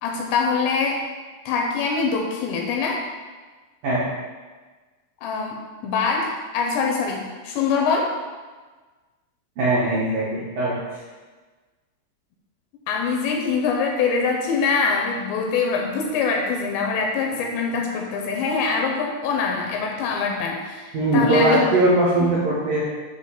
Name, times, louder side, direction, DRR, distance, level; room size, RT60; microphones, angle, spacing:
voice 1, 0.0-1.0 1.5-3.0 5.2-5.6 5.8-8.1 12.9-21.6 22.2-22.3, left 5 dB, 85° left, 1 dB, 2.6 m, -24 dB
voice 2, 9.6-11.0 20.9-22.8, right 2 dB, 75° right, -9 dB, 2.0 m, -20 dB
8.2 x 2.8 x 5.6 m, 1.3 s
omnidirectional pair, 5.4 m